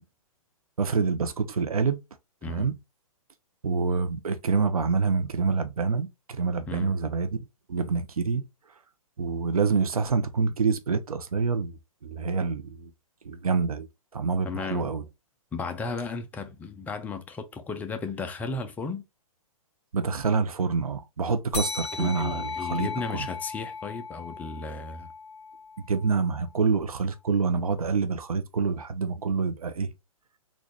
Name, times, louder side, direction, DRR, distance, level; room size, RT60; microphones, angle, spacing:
voice 1, 0.8-2.0 2.5-2.8 3.6-8.4 9.2-11.8 12.0-12.9 13.2-13.9 14.1-15.0 19.9-23.3 25.9-29.9, right 5 dB, 80° right, 0.7 m, -27 dB
voice 2, 14.4-14.9 15.5-19.0 22.0-25.1, left 4 dB, 10° left, 0.4 m, -34 dB
sound 1, 21.5-26.5, left 4 dB, 55° left, 1.3 m, -37 dB
3.9 x 2.4 x 3.2 m
figure-of-eight pair, 125°, 18 cm